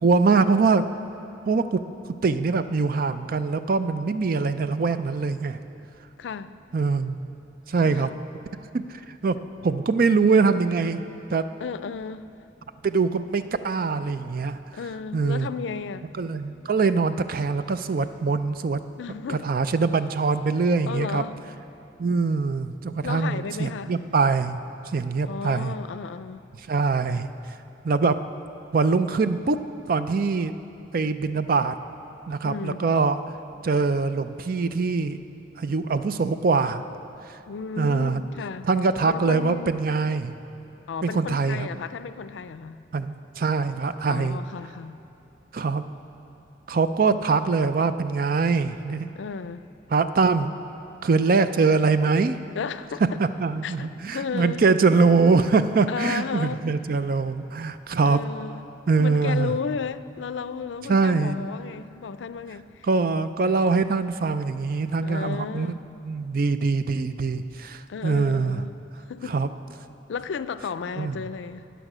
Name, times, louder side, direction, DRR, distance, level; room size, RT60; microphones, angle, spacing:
voice 1, 0.0-0.8 1.5-1.8 2.1-5.6 6.7-7.2 7.7-8.1 8.7-9.4 9.6-11.5 12.8-14.6 15.1-15.5 16.2-18.8 19.4-21.2 22.0-24.6 24.9-25.7 26.7-27.3 27.8-28.2 28.7-29.6 29.9-30.5 30.9-31.7 32.3-33.2 33.6-35.2 35.6-36.8 37.3-37.4 37.8-38.2 38.6-40.3 41.0-41.7 42.9-44.4 45.5-45.8 46.7-49.1 49.9-50.5 51.0-52.4 53.2-58.2 58.9-59.5 60.9-61.4 62.8-65.7 66.0-68.6 69.3-69.5 71.0-71.2, right 4 dB, 50° right, 0.4 m, -23 dB
voice 2, 6.2-6.5 7.8-8.1 11.6-12.3 14.7-16.1 19.0-19.5 20.9-21.4 23.0-23.9 25.3-26.4 32.4-32.9 37.5-38.7 39.1-39.7 40.9-42.8 44.1-45.0 49.1-49.7 52.6-53.2 53.6-54.7 55.9-56.7 58.1-58.7 59.0-62.9 65.0-65.8 67.9-68.8 69.1-69.4 70.1-71.7, left 6 dB, 85° left, 0.4 m, -33 dB
13.0 x 9.1 x 6.1 m
head